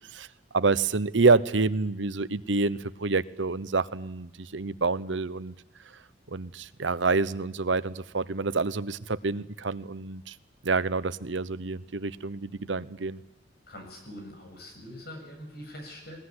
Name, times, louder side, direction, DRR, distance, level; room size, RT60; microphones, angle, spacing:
voice 1, 0.5-5.5 6.3-10.3 10.6-13.2, right 4 dB, 85° right, 16 dB, 0.9 m, -27 dB
voice 2, 13.7-16.2, equal, 60° left, 4 dB, 7.2 m, -43 dB
21.5 x 20.0 x 9.7 m, 0.83 s
head